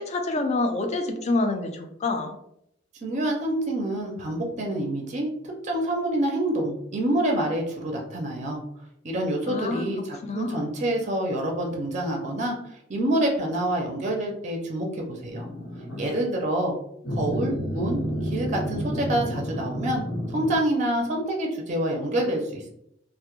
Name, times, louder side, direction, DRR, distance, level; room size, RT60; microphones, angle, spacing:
voice 1, 0.0-2.4 9.5-10.7, left 2 dB, 35° left, 5 dB, 0.3 m, -27 dB
voice 2, 3.0-5.3 5.6-8.6 9.0-15.5 16.0-16.7 17.1-20.0 20.3-22.7, right 1 dB, 40° right, 0 dB, 0.4 m, -27 dB
sound 1, 15.3-16.1 17.0-20.6, equal, 75° left, 1.0 m, -30 dB
2.1 x 2.0 x 2.9 m, 0.74 s
head